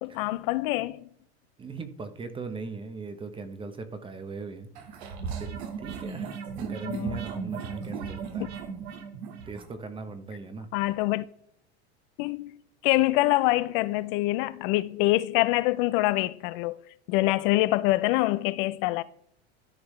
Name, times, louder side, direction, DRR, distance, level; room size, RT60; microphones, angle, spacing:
voice 1, 0.0-1.1 6.8-7.2 10.7-11.2 12.2-12.5 12.8-19.0, left 18 dB, 55° left, 0.5 m, -25 dB
voice 2, 1.6-5.1 5.4-8.6 9.5-10.9, right 4 dB, 15° right, 0.8 m, -40 dB
sound 1, 4.7-9.7, right 6 dB, 75° right, 1.7 m, -36 dB
13.5 x 4.7 x 3.2 m
supercardioid pair, 130°, 32 cm